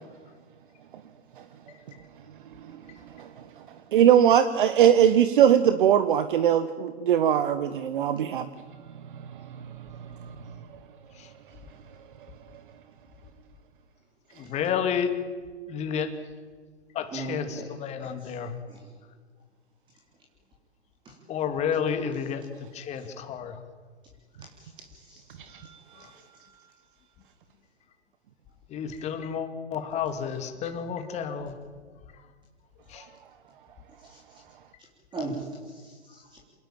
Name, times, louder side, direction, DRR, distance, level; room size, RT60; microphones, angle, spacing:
voice 1, 3.9-8.5 9.3-9.4 10.2-10.3 25.5-26.1, right 9 dB, 50° right, 11 dB, 1.4 m, -21 dB
voice 2, 14.4-15.2 15.7-16.1 16.9-18.5 21.3-22.4 22.7-23.6 28.7-31.5 32.9-33.0, left 7 dB, 20° left, 7 dB, 2.5 m, -30 dB
voice 3, 17.1-18.4 18.7-18.9 21.0-21.2 23.0-23.1 24.4-25.2 34.1-34.2 35.1-36.4, right 3 dB, 15° right, -1 dB, 4.0 m, -39 dB
27.5 x 19.5 x 9.0 m, 1.6 s
figure-of-eight pair, 130°, 34 cm